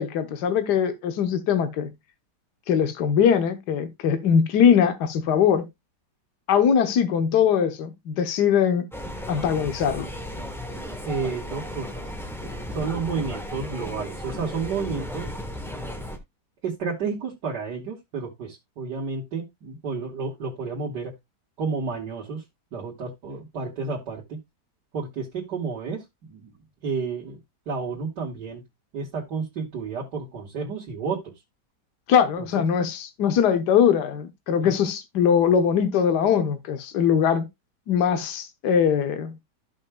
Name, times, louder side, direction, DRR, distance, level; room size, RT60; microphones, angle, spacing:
voice 1, 0.0-1.9 2.7-5.7 6.5-8.9 9.3-10.1 32.1-37.5 37.9-39.3, left 7 dB, 75° left, 1.5 m, -21 dB
sound 1, 8.9-16.2, left 1 dB, ahead, 1.0 m, -35 dB
voice 2, 11.1-12.0 12.5-15.3 15.8-16.1 16.6-21.1 21.6-22.4 22.7-24.4 24.9-26.5 26.8-27.4 27.7-28.6 28.9-31.3 32.4-32.6 34.6-34.7, right 5 dB, 75° right, 2.4 m, -31 dB
14.5 x 5.4 x 2.2 m
omnidirectional pair, 1.8 m